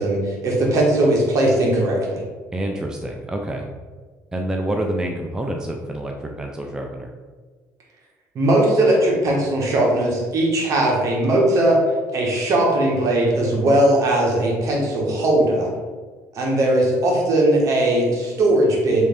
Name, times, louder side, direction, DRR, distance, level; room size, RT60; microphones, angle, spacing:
voice 1, 0.0-2.2 8.3-11.8 12.1-15.7 16.3-19.1, right 1 dB, 55° right, -1 dB, 1.0 m, -19 dB
voice 2, 2.5-3.7 4.3-7.1, right 1 dB, 10° right, 1 dB, 0.3 m, -27 dB
3.2 x 2.5 x 3.4 m, 1.4 s
supercardioid pair, 90°, 7 cm